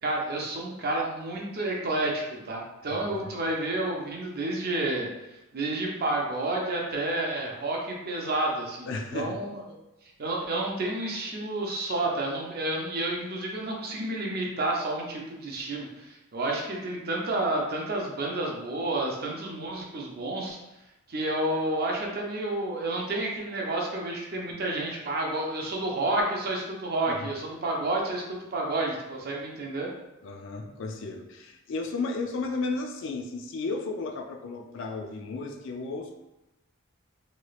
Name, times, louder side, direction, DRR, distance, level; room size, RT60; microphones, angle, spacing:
voice 1, 0.0-9.6 10.2-20.6 21.1-29.9, right 2 dB, 45° right, -1 dB, 0.6 m, -30 dB
voice 2, 8.9-9.4 27.1-27.3 30.2-36.1, left 3 dB, 55° left, 4 dB, 0.3 m, -34 dB
3.1 x 2.9 x 2.3 m, 0.94 s
head